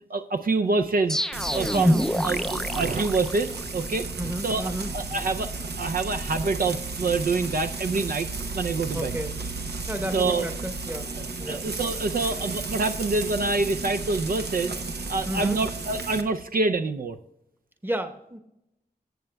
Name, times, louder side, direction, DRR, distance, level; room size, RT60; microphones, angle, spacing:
voice 1, 0.1-1.2 1.5-4.1 4.4-5.5 5.8-8.3 8.5-9.2 10.1-10.4 11.5-14.8 15.1-17.2, right 3 dB, 65° right, 8 dB, 0.5 m, -26 dB
sound 1, 1.1-3.9, equal, 5° left, 0.4 m, -26 dB
Frying (food), 1.3-16.2, right 3 dB, 85° right, 1.0 m, -33 dB
voice 2, 4.2-4.9 8.9-9.4 9.9-11.1 11.4-11.7 15.3-15.6 17.8-18.4, right 1 dB, 10° right, 7 dB, 1.0 m, -32 dB
14.5 x 7.7 x 2.2 m, 0.84 s
wide cardioid pair, 85°, 16 cm